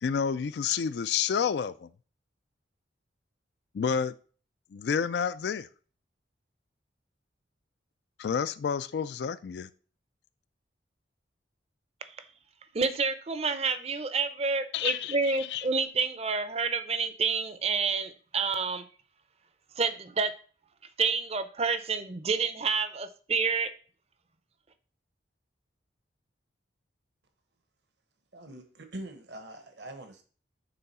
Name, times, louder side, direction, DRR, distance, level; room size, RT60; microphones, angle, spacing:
voice 1, 0.0-1.9 3.7-4.1 4.7-5.7 8.2-9.7 14.7-15.7, left 7 dB, 65° left, 0.3 m, -29 dB
voice 2, 12.7-18.8 19.8-20.3 21.0-23.7, right 4 dB, 35° right, 0.6 m, -29 dB
voice 3, 28.3-30.2, right 1 dB, 65° right, 1.0 m, -43 dB
6.9 x 3.7 x 5.4 m
head